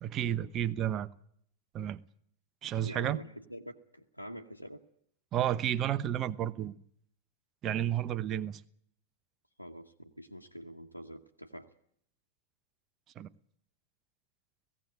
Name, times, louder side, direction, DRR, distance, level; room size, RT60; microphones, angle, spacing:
voice 1, 0.0-1.1 1.7-2.0 2.6-3.2 5.3-6.8 7.6-8.6 13.2-13.3, right 11 dB, 30° right, 0.9 m, -31 dB
voice 2, 2.8-4.8 9.6-11.7, equal, 90° right, 1.2 m, -46 dB
18.0 x 16.5 x 9.3 m
figure-of-eight pair, 90°, 0 cm